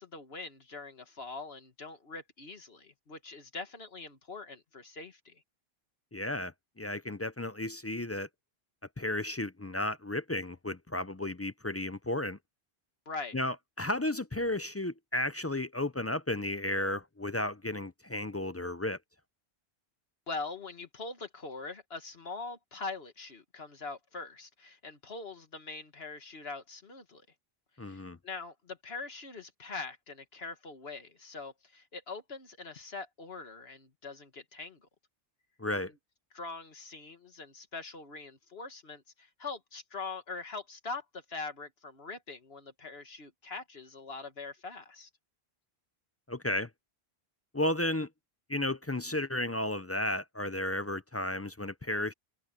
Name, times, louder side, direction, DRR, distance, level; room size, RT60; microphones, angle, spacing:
voice 1, 0.0-5.4 13.1-13.4 20.3-27.2 27.8-34.8 36.3-45.1, left 4 dB, 75° left, 1.9 m, -43 dB
voice 2, 6.1-8.3 9.0-12.4 13.3-19.0 27.8-28.2 35.6-35.9 46.3-46.7 47.5-48.1 48.5-52.1, left 1 dB, 20° left, 0.4 m, -33 dB
omnidirectional pair, 1.0 m